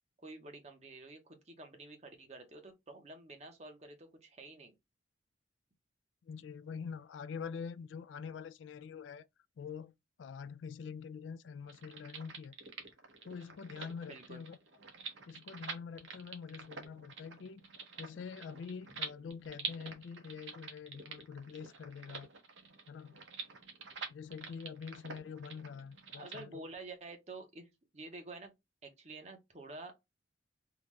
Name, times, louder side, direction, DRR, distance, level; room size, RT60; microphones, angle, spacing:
voice 1, 0.2-4.7 14.1-14.4 26.1-27.7 27.9-28.5 28.8-29.9, right 2 dB, 35° right, 0.8 m, -49 dB
voice 2, 6.2-9.3 9.6-9.9 10.2-12.5 13.3-14.6 15.3-17.6 18.0-22.3 22.9-23.2 24.1-26.6, left 6 dB, 80° left, 0.3 m, -45 dB
sound 1, 11.6-26.4, right 5 dB, 85° right, 1.0 m, -47 dB
3.8 x 2.3 x 3.1 m
head